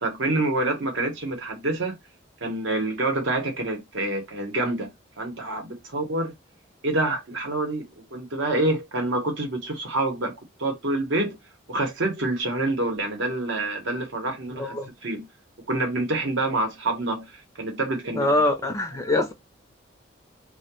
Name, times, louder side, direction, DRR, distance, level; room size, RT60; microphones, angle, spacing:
voice 1, 0.0-2.0 2.4-6.3 6.8-11.4 11.7-14.8 15.0-15.2 15.7-17.3 17.6-18.3, right 2 dB, 70° right, 0.8 m, -27 dB
voice 2, 14.5-14.9 18.1-19.3, left 2 dB, 15° left, 0.4 m, -24 dB
2.2 x 2.1 x 2.8 m
head